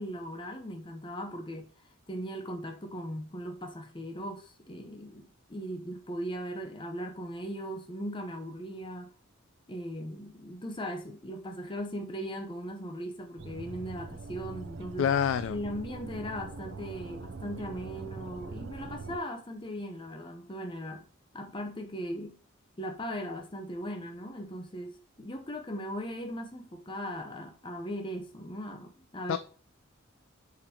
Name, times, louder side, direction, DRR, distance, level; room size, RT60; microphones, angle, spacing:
voice 1, 0.0-1.7 2.1-9.1 9.7-15.1 15.5-21.1 21.3-22.3 22.8-29.4, equal, 25° left, 0.7 m, -38 dB
sound 1, 13.4-19.2, right 3 dB, 60° right, 0.5 m, -42 dB
voice 2, 15.0-15.6 29.3-29.4, left 8 dB, 75° left, 0.3 m, -26 dB
7.1 x 5.2 x 2.8 m
head